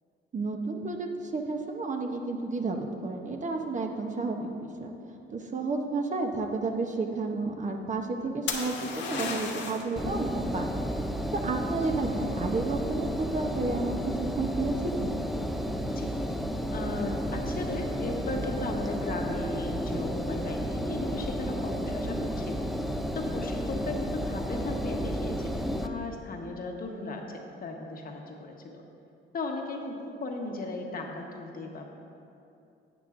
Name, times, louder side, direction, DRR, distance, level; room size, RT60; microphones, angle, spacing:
voice 1, 0.3-4.9 5.3-10.8 11.3-15.2, right 3 dB, 40° right, 3 dB, 0.8 m, -31 dB
sound 1, 8.5-9.9 13.6-14.1, left 5 dB, 70° left, 1.0 m, -34 dB
Engine, 10.0-25.9, equal, ahead, 0.5 m, -32 dB
voice 2, 16.7-22.7 23.1-28.8 29.3-31.8, left 2 dB, 45° left, 1 dB, 1.1 m, -36 dB
11.0 x 8.5 x 2.5 m, 2.7 s
cardioid pair, 90°, 20 cm